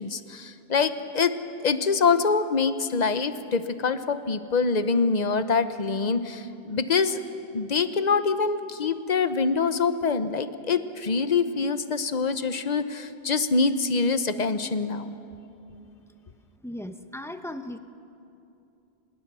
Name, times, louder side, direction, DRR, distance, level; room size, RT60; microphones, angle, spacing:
voice 1, 0.0-1.3 1.6-7.2 7.5-15.1, left 4 dB, 45° left, 11 dB, 1.0 m, -25 dB
voice 2, 16.6-17.8, left 1 dB, 5° left, 8 dB, 0.8 m, -36 dB
25.5 x 21.0 x 6.8 m, 2.7 s
omnidirectional pair, 1.0 m